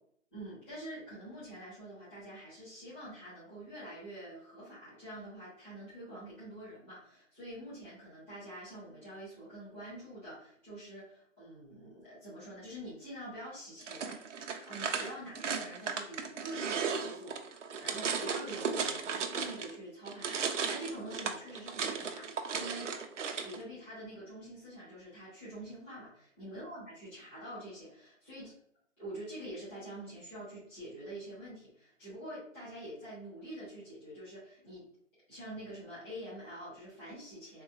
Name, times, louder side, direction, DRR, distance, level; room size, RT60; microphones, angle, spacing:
voice 1, 0.3-28.5 29.0-34.9 35.3-37.6, right 1 dB, 10° left, -15 dB, 1.3 m, -46 dB
sound 1, 13.8-19.8 20.1-23.6, right 6 dB, 70° right, 0.6 m, -35 dB
3.6 x 3.0 x 2.7 m, 0.66 s
hypercardioid pair, 175°, 38 cm